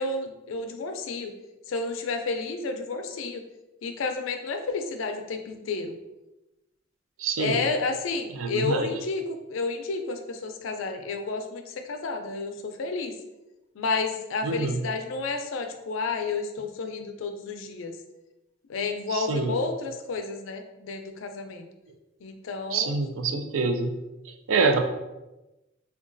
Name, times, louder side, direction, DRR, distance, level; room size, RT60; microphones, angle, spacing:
voice 1, 0.0-1.3 1.7-3.4 3.8-6.0 7.4-13.1 13.8-18.0 18.7-21.7 22.2-23.0, left 3 dB, 80° left, 6 dB, 0.4 m, -31 dB
voice 2, 7.2-7.6 8.4-8.9 14.4-14.8 19.1-19.6 22.7-23.9 24.5-24.8, right 4 dB, 90° right, 6 dB, 0.4 m, -25 dB
3.7 x 2.3 x 2.5 m, 1.0 s
head